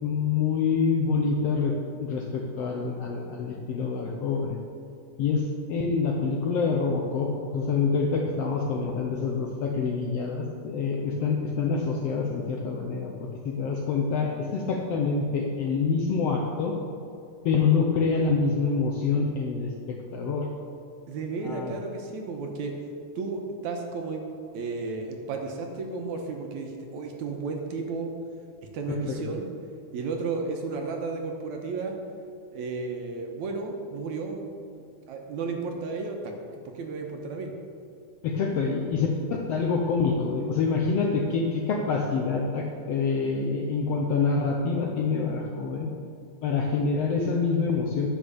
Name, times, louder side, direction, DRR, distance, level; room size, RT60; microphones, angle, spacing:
voice 1, 0.0-4.6 5.2-5.4 5.7-16.7 17.4-20.5 21.4-21.7 28.9-29.3 38.2-39.1 39.5-45.9 46.4-48.1, left 5 dB, 75° left, 0 dB, 1.5 m, -26 dB
voice 2, 21.1-22.7 23.2-24.2 24.5-28.1 28.7-29.5 29.9-32.0 32.5-34.8 35.1-36.3 36.8-37.5, right 4 dB, 70° right, 2 dB, 2.2 m, -33 dB
10.5 x 6.1 x 6.9 m, 2.5 s
omnidirectional pair, 3.7 m